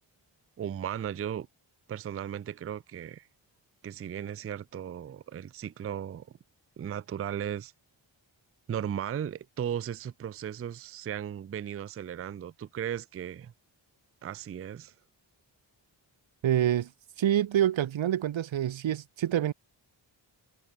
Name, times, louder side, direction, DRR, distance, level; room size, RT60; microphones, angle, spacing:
voice 1, 0.6-1.5 1.9-3.3 3.8-6.3 6.8-7.7 8.7-13.5 14.2-14.9, right 9 dB, 35° right, 0.4 m, -36 dB
voice 2, 16.4-16.9 17.2-19.5, right 11 dB, 80° right, 0.8 m, -26 dB
cardioid pair, 60°, 46 cm